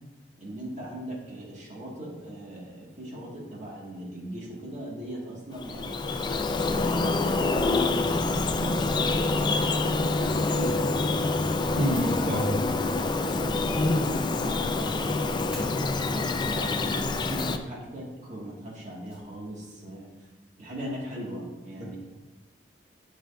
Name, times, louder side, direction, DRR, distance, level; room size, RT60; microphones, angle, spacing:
voice 1, 0.4-11.1 13.3-20.3 20.6-22.0, right 1 dB, 40° right, -4 dB, 1.9 m, -39 dB
Bird vocalization bird call bird song, 5.5-17.6, left 3 dB, 25° left, 0.3 m, -26 dB
voice 2, 11.7-12.5 21.8-22.0, equal, 85° right, -8 dB, 2.5 m, -28 dB
Fire, 11.9-12.2 13.0-14.7 15.0-15.1 15.5-15.6 17.3-17.6 19.0-19.9 20.2-20.3 20.5-20.6, equal, 5° right, 2.3 m, -47 dB
9.2 x 6.3 x 2.6 m, 1.1 s
head